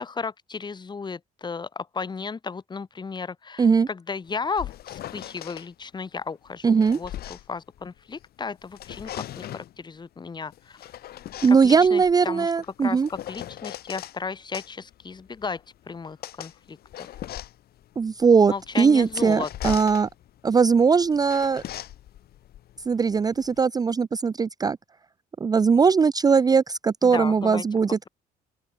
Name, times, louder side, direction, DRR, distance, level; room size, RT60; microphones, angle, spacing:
voice 1, 0.0-10.8 11.5-12.5 12.8-17.1 18.5-19.8 27.0-27.6, left 5 dB, 25° left, 2.0 m, -34 dB
sound 1, 4.3-5.7 6.5-8.3 8.6-9.8 10.5-14.2 14.5-23.6, left 12 dB, 65° left, 7.7 m, -40 dB
voice 2, 6.6-7.0 11.4-13.1 18.0-20.1 20.4-21.6 22.9-24.8 25.4-28.1, right 5 dB, 25° right, 0.5 m, -20 dB
open air
cardioid pair, 110°, 17 cm